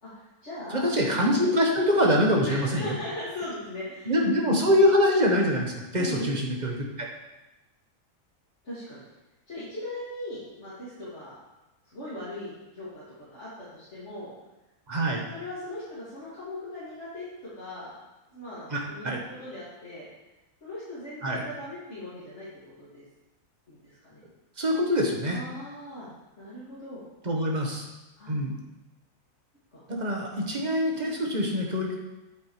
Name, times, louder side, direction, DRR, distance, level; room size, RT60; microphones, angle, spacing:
voice 1, 0.0-0.9 2.4-4.2 6.0-6.3 8.6-9.0 9.5-11.4 11.9-14.3 15.3-17.9 18.3-20.0 20.6-22.5 22.8-23.0 23.7-24.2 25.2-27.0 28.2-28.4 29.7-29.8, left 1 dB, 55° left, -12 dB, 2.9 m, -39 dB
voice 2, 0.7-2.8 4.1-7.1 14.9-15.2 18.7-19.2 21.2-21.4 24.6-25.4 27.2-27.8 28.3-28.5 29.9-32.0, equal, 35° right, -1 dB, 1.3 m, -24 dB
8.3 x 8.2 x 3.2 m, 1.0 s
omnidirectional pair, 1.4 m